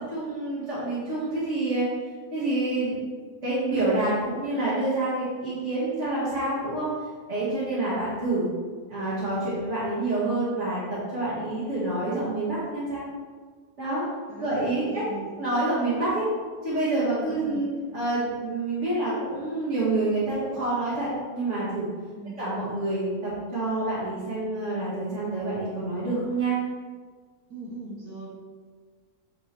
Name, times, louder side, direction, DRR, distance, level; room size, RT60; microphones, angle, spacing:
voice 1, 0.0-1.9 2.3-3.0 3.4-6.9 7.3-8.5 8.9-13.0 13.8-14.0 14.4-15.0 15.4-16.3 16.6-17.7 17.9-21.9 22.4-26.6, right 2 dB, 50° right, -11 dB, 2.5 m, -27 dB
voice 2, 14.9-15.3 17.3-17.7 22.1-22.4 27.5-28.3, right 2 dB, 85° right, -6 dB, 2.0 m, -39 dB
9.4 x 5.2 x 3.4 m, 1.5 s
omnidirectional pair, 1.6 m